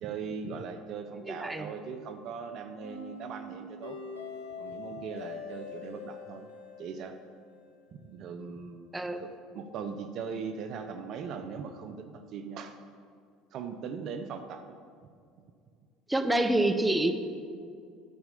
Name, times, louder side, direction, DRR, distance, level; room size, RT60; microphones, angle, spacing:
voice 1, 0.0-4.0 4.6-6.5 6.8-7.2 7.9-9.3 9.5-12.8 13.5-14.8, right 5 dB, 55° right, 7 dB, 0.7 m, -39 dB
voice 2, 1.2-1.7 8.9-9.2 16.1-17.1, right 1 dB, 10° right, 7 dB, 1.0 m, -27 dB
sound 1, 2.8-7.9, left 3 dB, 80° left, 2.0 m, -43 dB
11.5 x 6.1 x 6.7 m, 2.3 s
hypercardioid pair, 70°, 0 cm